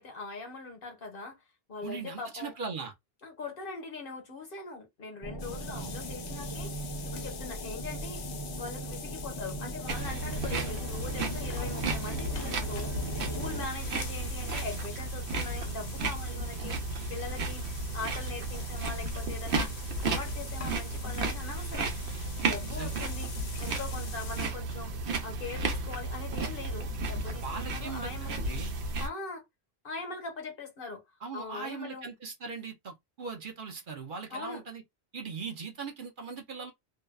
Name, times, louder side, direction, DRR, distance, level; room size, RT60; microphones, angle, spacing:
voice 1, 0.0-1.4 1.7-2.5 3.2-8.2 8.6-12.9 13.4-16.8 17.1-17.6 17.9-21.9 22.4-23.3 23.6-24.9 25.2-28.5 29.0-29.4 29.8-31.0 31.3-32.1 34.3-34.6, left 4 dB, 60° left, 1.1 m, -41 dB
voice 2, 1.8-2.9 5.7-5.9 11.6-12.0 22.6-23.1 27.4-28.7 31.2-34.8 35.1-36.7, right 5 dB, 55° right, 0.8 m, -40 dB
sound 1, 5.2-13.7, right 1 dB, 25° left, 0.6 m, -38 dB
sound 2, 5.4-24.5, left 6 dB, 75° left, 0.9 m, -46 dB
sound 3, 9.9-29.1, right 3 dB, 80° right, 1.0 m, -34 dB
2.6 x 2.1 x 2.2 m
omnidirectional pair, 1.1 m